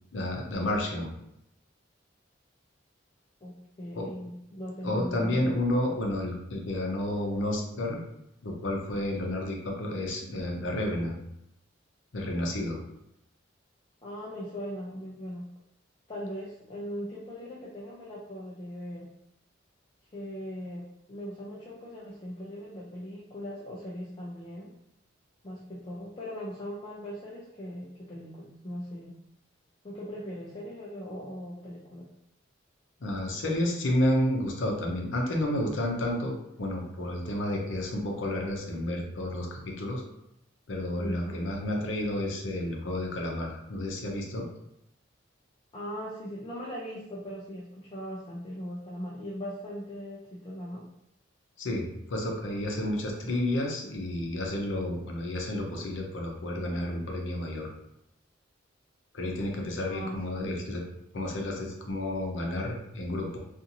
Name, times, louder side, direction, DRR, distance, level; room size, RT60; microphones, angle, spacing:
voice 1, 0.1-1.1 3.9-4.1 4.8-8.0 8.4-11.2 12.1-12.8 33.0-40.0 40.7-44.5 51.6-57.7 59.1-60.8 61.1-63.4, left 1 dB, 70° left, 1 dB, 0.6 m, -31 dB
voice 2, 3.4-5.6 14.0-15.4 16.1-19.1 20.1-24.7 25.4-29.1 29.8-32.1 41.0-41.4 45.7-50.8 59.8-60.5, equal, 30° left, -6 dB, 0.4 m, -39 dB
2.6 x 2.5 x 2.8 m, 0.80 s
head